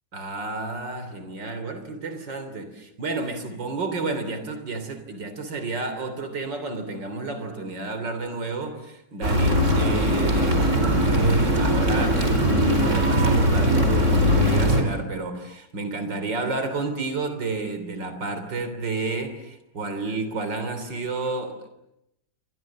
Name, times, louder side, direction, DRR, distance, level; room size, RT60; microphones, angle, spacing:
voice 1, 0.1-21.7, right 3 dB, 90° right, 9 dB, 4.0 m, -31 dB
sound 1, 9.2-14.8, equal, 40° right, 4.8 m, -20 dB
29.5 x 26.5 x 7.5 m, 0.84 s
omnidirectional pair, 1.9 m